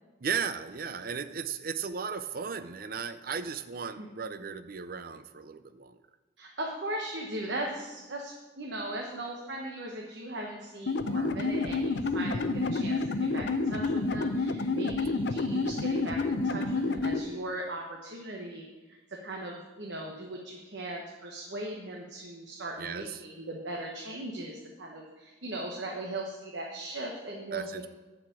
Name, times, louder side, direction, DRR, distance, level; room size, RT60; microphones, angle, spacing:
voice 1, 0.2-6.0 22.8-23.2 27.5-27.9, right 6 dB, 50° right, 11 dB, 0.5 m, -36 dB
voice 2, 6.4-27.7, right 1 dB, 70° right, -1 dB, 1.2 m, -38 dB
sound 1, 10.9-17.2, left 3 dB, 65° left, 0.6 m, -29 dB
10.5 x 4.8 x 7.5 m, 1.2 s
head